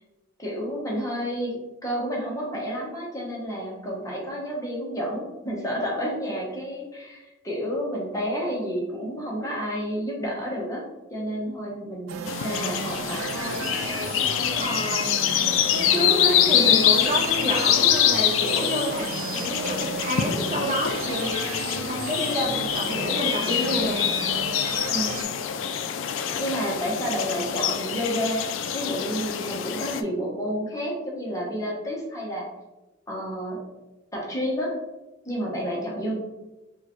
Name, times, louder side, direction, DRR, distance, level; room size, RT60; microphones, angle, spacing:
voice 1, 0.4-10.8 11.1-13.2 24.9-25.2 26.4-28.4 28.7-32.5 33.1-33.6 34.1-34.7 35.2-36.2, equal, 15° left, -3 dB, 0.8 m, -30 dB
sound 1, 12.1-25.2, right 5 dB, 80° right, 0.3 m, -34 dB
sound 2, 12.3-30.0, left 9 dB, 80° left, 0.3 m, -25 dB
voice 2, 13.3-15.1 15.5-24.2, equal, 35° right, -1 dB, 0.6 m, -29 dB
4.5 x 2.2 x 2.9 m, 1.0 s
head